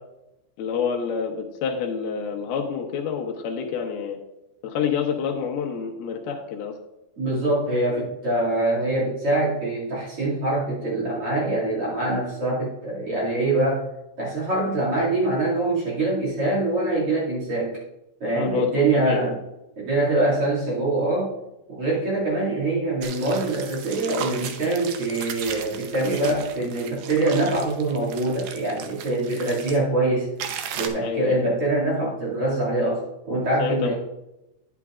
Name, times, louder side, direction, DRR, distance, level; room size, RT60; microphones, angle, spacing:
voice 1, 0.6-4.2 4.6-6.7 18.3-19.3 31.0-31.4 33.6-33.9, left 6 dB, 75° left, 2 dB, 2.8 m, -27 dB
voice 2, 7.2-13.9 14.2-17.8 18.2-19.4 19.8-21.3 21.7-30.3 30.7-33.9, right 2 dB, 40° right, -6 dB, 2.8 m, -24 dB
sound 1, 23.0-29.8 30.4-30.9, right 8 dB, 85° right, 1.8 m, -36 dB
10.5 x 9.7 x 2.4 m, 0.92 s
omnidirectional pair, 4.6 m